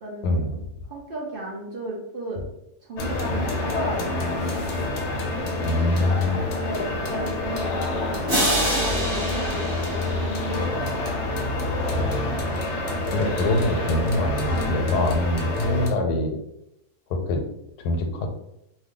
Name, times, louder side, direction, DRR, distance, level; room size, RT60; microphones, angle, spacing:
voice 1, 0.0-2.5 2.9-4.6 6.5-10.7 11.0-11.1, right 1 dB, 60° right, -2 dB, 0.5 m, -34 dB
sound 1, 3.0-15.9, left 2 dB, 65° left, 0.7 m, -27 dB
voice 2, 5.6-6.4 13.1-16.4 17.1-17.4 17.8-18.3, left 1 dB, 90° left, 4 dB, 1.1 m, -24 dB
sound 2, 8.3-11.0, equal, 35° right, 0.9 m, -27 dB
2.7 x 2.2 x 3.6 m, 0.82 s
omnidirectional pair, 1.7 m